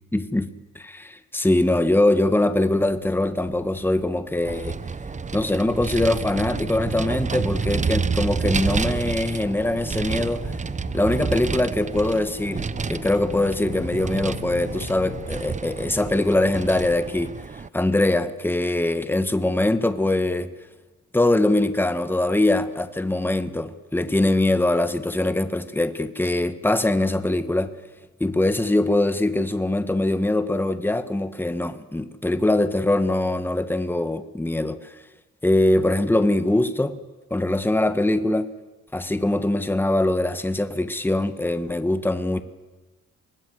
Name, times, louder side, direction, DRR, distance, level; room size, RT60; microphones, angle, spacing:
voice 1, 0.1-4.8 5.3-10.5 10.9-20.5 21.1-27.7 28.2-34.9 35.4-37.0 37.3-38.5 38.9-42.4, left 1 dB, 5° left, 1.5 m, -22 dB
sound 1, 3.6-15.3, left 7 dB, 55° left, 2.4 m, -42 dB
Vehicle, 4.4-17.7, right 5 dB, 25° right, 0.8 m, -29 dB
25.0 x 19.5 x 8.0 m
cardioid pair, 90°, 30 cm